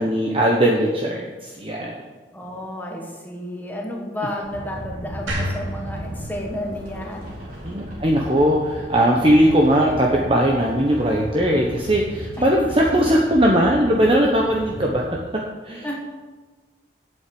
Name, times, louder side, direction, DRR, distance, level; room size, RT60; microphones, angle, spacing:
voice 1, 0.0-2.0 7.6-15.0 15.6-16.0, equal, 30° right, -1 dB, 1.1 m, -19 dB
voice 2, 2.3-7.3 15.8-16.0, left 1 dB, 10° left, -1 dB, 1.6 m, -31 dB
sound 1, 4.4-15.0, equal, 45° right, 3.7 m, -36 dB
sound 2, 5.3-8.4, equal, 85° right, 3.3 m, -32 dB
8.7 x 8.0 x 8.7 m, 1.3 s
head